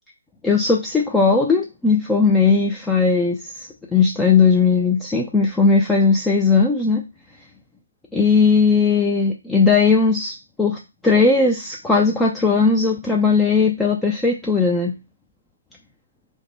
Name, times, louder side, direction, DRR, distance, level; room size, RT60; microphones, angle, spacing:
voice 1, 0.4-7.0 8.1-14.9, left 4 dB, 5° left, -1 dB, 0.3 m, -18 dB
3.1 x 2.1 x 4.2 m, 0.27 s
figure-of-eight pair, 140°, 0 cm